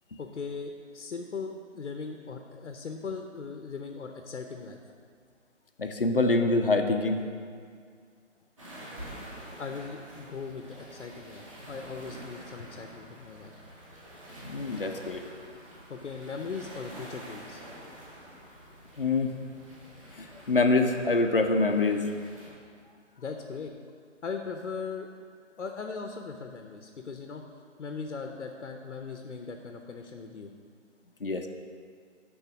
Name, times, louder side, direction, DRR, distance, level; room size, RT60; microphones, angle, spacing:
voice 1, 0.2-4.8 9.6-13.5 15.9-17.6 23.2-23.7 24.2-25.1 25.6-27.4 27.8-30.5, left 5 dB, 75° left, 4 dB, 0.8 m, -39 dB
voice 2, 5.8-7.2 14.5-15.2 19.0-19.3 20.2-22.0 31.2-31.5, left 3 dB, 45° left, 5 dB, 0.6 m, -25 dB
sound 1, 8.6-22.5, right 1 dB, 25° right, 1.4 m, -47 dB
9.9 x 3.9 x 5.8 m, 2.1 s
hypercardioid pair, 175°, 37 cm